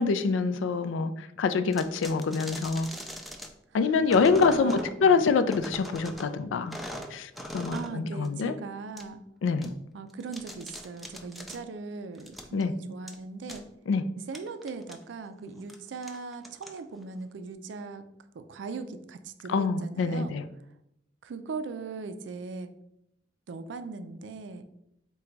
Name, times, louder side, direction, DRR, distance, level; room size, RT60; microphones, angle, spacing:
voice 1, 0.0-2.9 3.7-6.8 7.1-8.5 9.4-9.7 12.5-12.7 13.9-14.0 19.5-20.4, left 4 dB, 90° left, 11 dB, 0.3 m, -25 dB
sound 1, 1.7-3.5 4.1-4.9 5.5-6.3 6.7-8.0 8.2-8.3 9.0-9.1 9.6-9.7 10.1-11.6 12.1-12.6 13.1-13.2 13.5-13.6 14.3-15.0 15.6-15.8 16.0-17.0, equal, ahead, 0.3 m, -41 dB
voice 2, 3.8-4.9 7.7-9.2 9.9-13.6 14.3-18.0 18.3-20.3 21.2-22.7 23.5-24.6, right 4 dB, 70° right, 9 dB, 0.4 m, -39 dB
3.8 x 2.3 x 4.4 m, 0.78 s
head